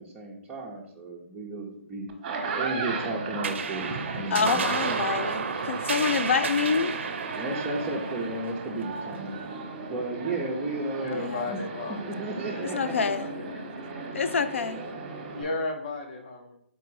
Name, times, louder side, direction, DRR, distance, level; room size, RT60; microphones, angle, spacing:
voice 1, 0.0-2.1 2.6-3.9 4.1-4.7 7.3-9.4 9.9-11.6 12.2-13.1, right 2 dB, 10° right, -6 dB, 0.5 m, -33 dB
sound 1, 2.1-15.4, right 4 dB, 30° right, 0.8 m, -36 dB
sound 2, 3.4-10.2, right 5 dB, 60° right, 0.5 m, -32 dB
voice 2, 4.3-7.0 11.1-11.4 12.6-13.3 14.1-14.8, left 5 dB, 65° left, 11 dB, 0.4 m, -27 dB
voice 3, 10.9-13.5 15.3-16.6, left 2 dB, 40° left, 3 dB, 0.9 m, -35 dB
4.0 x 2.5 x 4.6 m, 0.70 s
hypercardioid pair, 155°, 7 cm